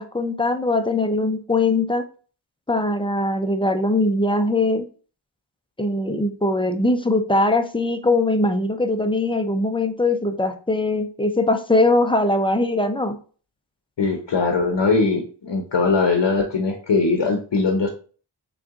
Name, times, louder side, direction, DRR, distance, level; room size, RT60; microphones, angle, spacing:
voice 1, 0.0-2.1 2.7-4.8 5.8-13.2, left 2 dB, 10° left, 7 dB, 0.4 m, -21 dB
voice 2, 14.0-17.9, left 4 dB, 60° left, 3 dB, 0.8 m, -21 dB
3.7 x 2.4 x 3.5 m, 0.39 s
cardioid pair, 40°, 48 cm